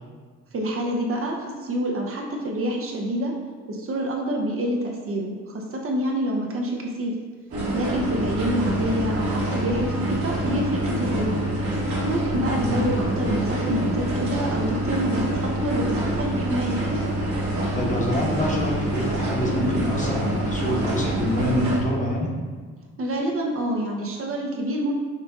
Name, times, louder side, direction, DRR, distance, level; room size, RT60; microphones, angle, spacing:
voice 1, 0.5-3.3 3.7-7.1 7.7-11.5 12.0-16.8 23.0-24.9, right 1 dB, 45° right, 0 dB, 0.7 m, -27 dB
sound 1, 7.5-21.8, right 1 dB, 70° right, 1.5 m, -26 dB
voice 2, 12.5-13.0 17.5-22.3, left 1 dB, 25° left, -2 dB, 1.0 m, -26 dB
5.6 x 2.5 x 3.5 m, 1.5 s
cardioid pair, 90°, 30 cm